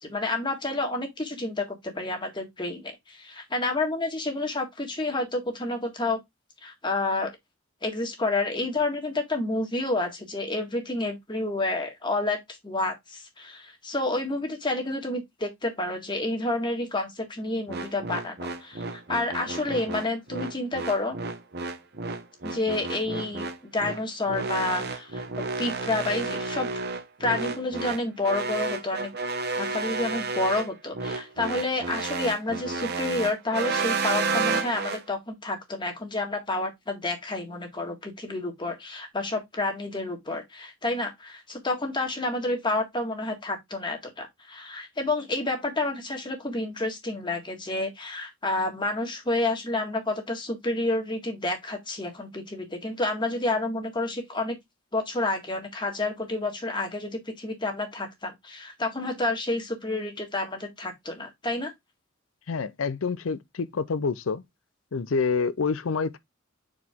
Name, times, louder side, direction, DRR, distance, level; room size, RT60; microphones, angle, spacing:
voice 1, 0.0-6.2 6.6-7.3 7.8-21.2 22.4-23.5 23.7-25.2 25.6-26.7 27.2-29.1 29.6-54.6 54.9-61.7, left 2 dB, 25° left, 1.8 m, -29 dB
sound 1, 17.7-35.0, right 4 dB, 55° right, 1.0 m, -31 dB
voice 2, 62.5-64.4 64.9-66.2, left 5 dB, 80° left, 0.6 m, -27 dB
6.0 x 4.8 x 3.5 m
head